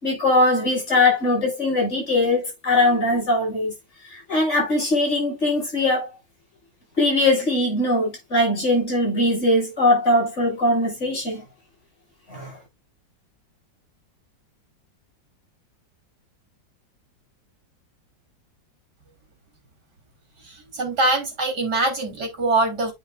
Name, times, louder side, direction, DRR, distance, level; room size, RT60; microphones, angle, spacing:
voice 1, 0.0-3.7 4.1-6.1 7.0-11.4 12.3-12.6, left 2 dB, 35° left, 6.9 m, -21 dB
voice 2, 20.4-22.9, right 2 dB, 55° right, 4.3 m, -23 dB
9.4 x 8.3 x 2.5 m
omnidirectional pair, 2.0 m